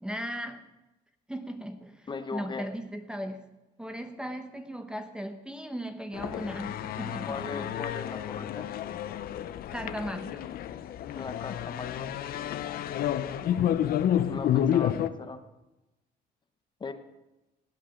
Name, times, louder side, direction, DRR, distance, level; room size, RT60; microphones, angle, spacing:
voice 1, 0.0-0.7 1.3-3.5 3.8-7.7 9.7-10.5 13.3-13.8, equal, 5° right, 7 dB, 0.9 m, -38 dB
voice 2, 2.1-2.7 7.3-8.7 11.1-12.1 14.3-15.4 16.8-16.9, left 4 dB, 25° left, 9 dB, 1.0 m, -38 dB
sound 1, 6.1-15.1, left 10 dB, 60° left, 0.7 m, -30 dB
17.0 x 8.6 x 5.2 m, 1.0 s
cardioid pair, 110°, 17 cm